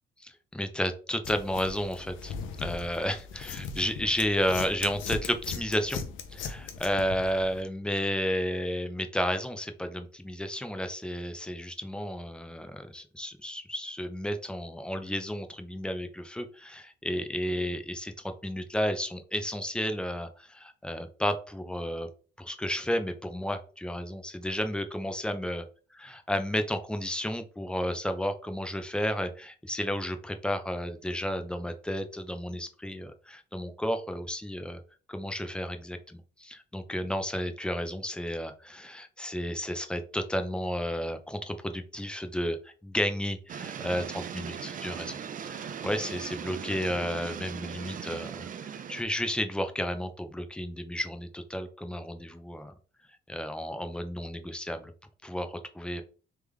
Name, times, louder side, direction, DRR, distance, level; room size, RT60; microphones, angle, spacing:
voice 1, 0.2-6.0 6.3-22.1 22.4-25.6 26.0-34.8 35.1-52.7 53.3-54.9 55.2-56.0, equal, 5° left, 7 dB, 0.6 m, -32 dB
sound 1, 1.2-7.6, left 5 dB, 80° left, 0.7 m, -39 dB
sound 2, 43.5-49.0, right 8 dB, 45° right, 0.4 m, -39 dB
3.6 x 3.3 x 3.2 m, 0.37 s
cardioid pair, 90°, 20 cm